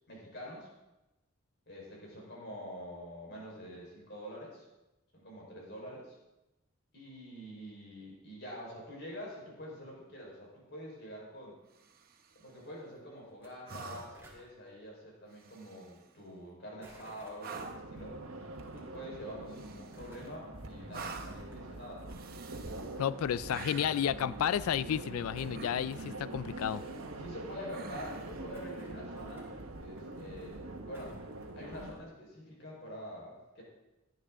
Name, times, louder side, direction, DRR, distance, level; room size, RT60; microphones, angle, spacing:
voice 1, 0.1-0.7 1.7-4.7 5.1-6.2 6.9-11.5 12.3-18.2 18.7-22.1 27.2-29.5 29.8-31.2 31.5-33.6, equal, 50° left, -3 dB, 4.6 m, -46 dB
sound 1, 11.7-12.4 13.7-14.3 15.3-16.1 17.4-18.0 19.5-20.2 20.9-21.5 22.1-23.0 23.5-24.1 25.5-26.1 26.5-27.2 27.7-28.4 30.3-30.4, right 4 dB, 45° right, 1.0 m, -47 dB
sound 2, 13.3-13.5 13.7-14.4 16.8-17.7 18.6-18.8 19.7-20.3 20.8-21.8 22.1-22.2 23.0-23.1 23.6-23.7 23.9-24.0 24.4-25.1 25.4-26.3 26.6-26.7 26.9-27.0 27.1-28.1 28.5-29.5 29.9-30.6 30.9-32.0, right 2 dB, 10° right, 2.7 m, -58 dB
sound 3, 17.5-31.9, right 2 dB, 80° right, 1.3 m, -44 dB
voice 2, 23.0-26.8, left 9 dB, 80° left, 18 dB, 0.3 m, -32 dB
17.0 x 10.5 x 3.7 m, 0.99 s
head